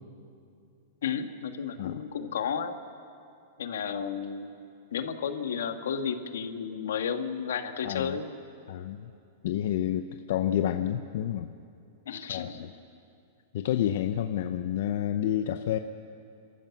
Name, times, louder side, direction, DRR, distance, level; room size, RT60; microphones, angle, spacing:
voice 1, 1.0-2.8 3.6-4.5 4.9-8.3 12.1-12.7, left 7 dB, 85° left, 7 dB, 1.6 m, -32 dB
voice 2, 7.8-8.2 8.7-9.1 9.4-11.5 12.3-12.5 13.5-15.8, left 11 dB, 60° left, 8 dB, 0.7 m, -29 dB
29.5 x 13.5 x 7.1 m, 2.6 s
supercardioid pair, 155°, 0 cm